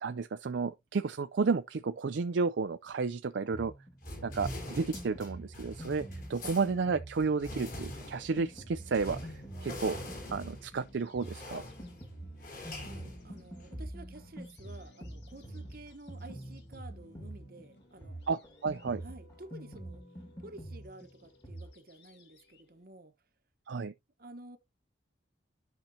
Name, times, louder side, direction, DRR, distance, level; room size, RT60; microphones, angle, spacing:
voice 1, 0.0-3.7 4.2-9.3 9.6-10.0 10.3-11.6 18.3-19.0 23.7-23.9, right 4 dB, 65° right, 0.4 m, -32 dB
Drum kit, 3.5-21.7, right 1 dB, 20° left, 1.8 m, -46 dB
sound 1, 4.0-13.8, left 1 dB, 45° left, 3.7 m, -44 dB
sound 2, 7.1-22.9, left 2 dB, 60° left, 1.7 m, -61 dB
voice 2, 12.7-18.2 19.0-20.0 20.4-23.1 24.2-24.6, right 2 dB, 50° right, 1.0 m, -51 dB
10.5 x 5.8 x 2.8 m
head